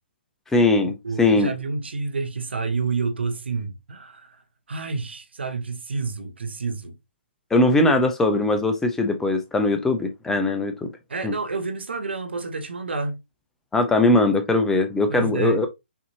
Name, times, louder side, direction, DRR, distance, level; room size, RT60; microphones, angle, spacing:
voice 1, 0.5-1.5 7.5-10.9 11.2-11.4 13.7-15.7, left 2 dB, 5° left, 0.5 m, -20 dB
voice 2, 1.0-4.4 4.7-6.9 11.1-13.2 15.1-15.6, right 4 dB, 70° right, 1.1 m, -29 dB
5.9 x 2.8 x 2.7 m
figure-of-eight pair, 140°, 6 cm